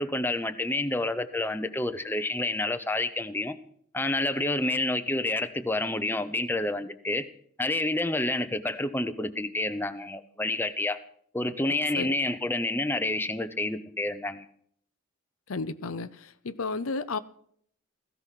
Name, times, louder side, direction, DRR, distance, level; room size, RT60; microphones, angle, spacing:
voice 1, 0.0-3.6 3.9-7.3 7.6-11.0 11.3-14.5, left 2 dB, 10° left, 0.8 m, -29 dB
voice 2, 15.5-17.2, left 3 dB, 85° left, 0.8 m, -33 dB
16.5 x 15.0 x 5.8 m
head